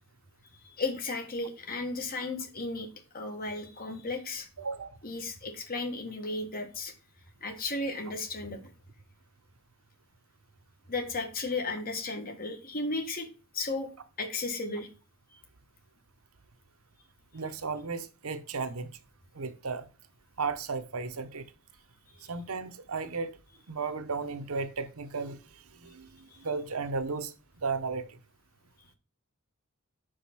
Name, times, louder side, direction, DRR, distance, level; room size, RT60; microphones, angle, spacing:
voice 1, 0.6-2.9 3.1-4.5 5.0-6.9 7.4-8.6 10.9-13.3 13.5-13.9 14.2-14.9 15.3-15.4 22.1-22.3, left 3 dB, 45° left, 1.7 m, -34 dB
voice 2, 4.6-5.0 17.3-18.9 19.3-19.8 20.4-21.4 22.3-23.3 23.7-25.4 25.8-26.1 26.4-27.3 27.6-28.2, right 4 dB, 75° right, 0.8 m, -34 dB
5.1 x 5.1 x 5.8 m
head